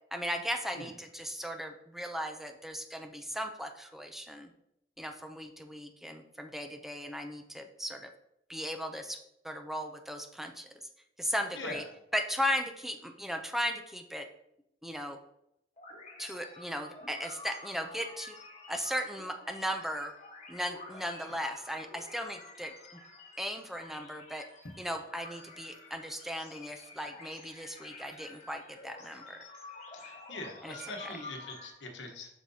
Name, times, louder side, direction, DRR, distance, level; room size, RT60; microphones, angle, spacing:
voice 1, 0.1-4.5 5.0-8.1 8.5-9.2 9.4-10.7 11.2-11.8 12.1-14.3 14.8-15.2 16.2-18.4 18.7-20.1 20.5-22.7 23.4-24.5 24.8-29.4 30.6-31.2, equal, ahead, 5 dB, 0.4 m, -37 dB
sound 1, 15.8-31.7, left 2 dB, 40° left, 1.2 m, -50 dB
voice 2, 29.9-32.3, left 2 dB, 80° left, 3 dB, 1.2 m, -42 dB
7.4 x 6.1 x 2.8 m, 0.79 s
head